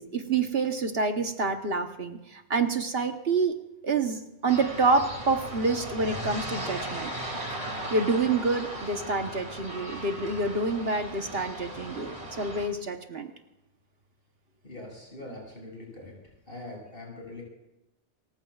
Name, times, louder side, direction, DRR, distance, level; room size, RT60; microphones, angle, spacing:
voice 1, 0.0-3.6 3.8-7.1 7.6-13.3, right 3 dB, 60° right, 5 dB, 1.4 m, -27 dB
sound 1, 4.5-12.7, right 1 dB, 35° right, 2.9 m, -37 dB
voice 2, 14.6-16.1 16.5-17.4, left 2 dB, 50° left, -2 dB, 7.1 m, -42 dB
29.5 x 15.0 x 2.4 m, 0.92 s
omnidirectional pair, 1.2 m